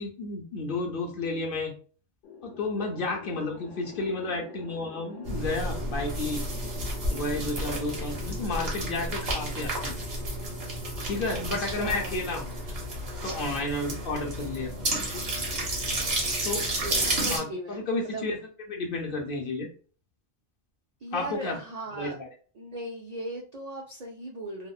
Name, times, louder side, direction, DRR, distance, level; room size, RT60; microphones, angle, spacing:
voice 1, 0.0-1.7 2.4-6.4 7.1-10.0 11.0-12.6 13.2-14.7 16.4-16.7 17.3-18.4 18.7-19.7 21.1-21.6 21.9-22.3, left 2 dB, 60° left, 1 dB, 0.6 m, -32 dB
sound 1, 2.2-14.6, left 3 dB, 80° left, 1.0 m, -48 dB
sound 2, 5.2-17.4, right 1 dB, 55° right, 1.1 m, -31 dB
voice 2, 11.2-12.2 16.5-18.4 21.0-22.2 22.6-24.7, right 2 dB, 80° right, 0 dB, 0.3 m, -38 dB
2.8 x 2.0 x 2.3 m, 0.39 s
omnidirectional pair, 1.3 m